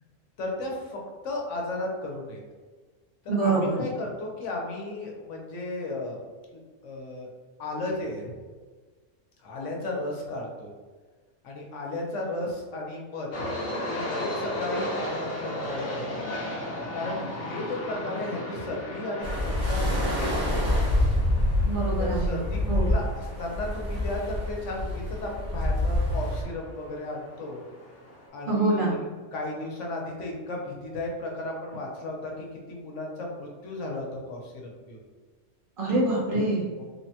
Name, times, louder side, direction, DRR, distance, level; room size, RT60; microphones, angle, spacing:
voice 1, 0.4-2.4 3.2-6.2 6.5-7.3 7.6-8.3 9.4-10.7 11.4-13.5 13.9-16.3 16.9-20.8 22.0-27.6 28.3-35.0 36.8-36.9, left 2 dB, 75° left, -1 dB, 1.0 m, -35 dB
voice 2, 3.3-3.8 21.6-22.4 22.7-22.9 28.5-29.0 35.8-36.6, right 2 dB, 50° right, -5 dB, 0.7 m, -25 dB
sound 1, 13.3-28.3, left 1 dB, 45° left, 0.7 m, -36 dB
sound 2, 19.2-26.4, left 1 dB, 70° right, 1.0 m, -26 dB
3.3 x 2.1 x 2.7 m, 1.4 s
omnidirectional pair, 1.3 m